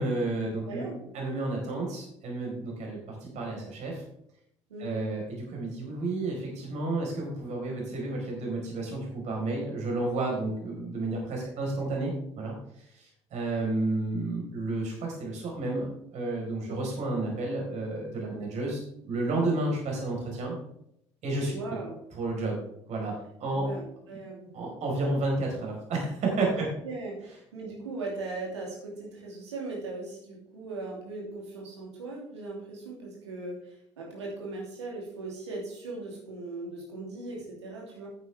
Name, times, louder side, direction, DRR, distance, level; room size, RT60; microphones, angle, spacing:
voice 1, 0.0-0.8 1.1-4.0 4.8-14.9 15.2-20.5 21.2-21.6 22.2-22.6 22.9-23.6 24.5-26.7, right 2 dB, 50° right, -1 dB, 4.5 m, -31 dB
voice 2, 0.7-1.1 4.7-5.0 16.6-16.8 21.5-22.0 23.5-24.5 26.5-38.1, right 3 dB, 80° right, -2 dB, 2.9 m, -39 dB
10.5 x 9.5 x 3.4 m, 0.76 s
figure-of-eight pair, 55°, 15 cm